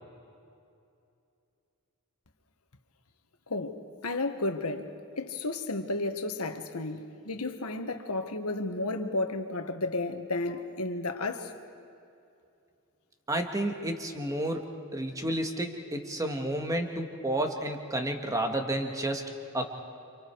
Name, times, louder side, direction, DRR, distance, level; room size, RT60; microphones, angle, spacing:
voice 1, 3.5-11.5, left 2 dB, 85° left, 1.6 m, -33 dB
voice 2, 13.3-19.8, right 1 dB, 15° right, 1.8 m, -31 dB
29.5 x 27.0 x 4.8 m
head